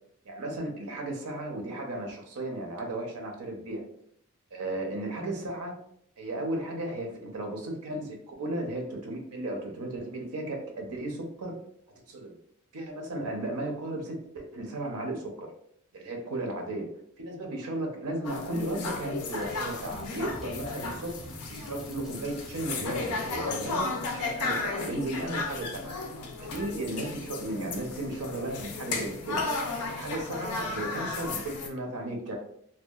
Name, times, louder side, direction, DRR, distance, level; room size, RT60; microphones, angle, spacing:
voice 1, 0.3-3.8 4.5-5.8 6.2-11.6 12.1-12.3 12.7-15.5 15.9-16.9 17.2-21.2 21.5-25.9 26.4-29.4 29.8-32.4, right 1 dB, 80° right, 2 dB, 0.5 m, -35 dB
sound 1, 18.2-31.7, left 3 dB, 80° left, 0.4 m, -34 dB
Drum kit, 19.2-24.2, right 1 dB, ahead, 0.7 m, -48 dB
2.7 x 2.2 x 2.2 m, 0.69 s
head